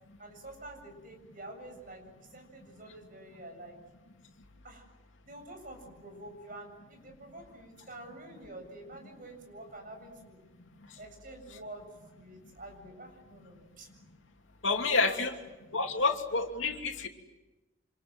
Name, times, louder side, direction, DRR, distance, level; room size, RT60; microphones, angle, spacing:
voice 1, 0.2-3.8 4.6-4.9 5.3-10.4 11.0-13.9 14.8-15.2, right 1 dB, 45° right, 4 dB, 7.6 m, -48 dB
voice 2, 14.6-15.3 15.7-17.1, left 4 dB, 75° left, 3 dB, 2.8 m, -29 dB
29.0 x 26.5 x 7.9 m, 1.0 s
head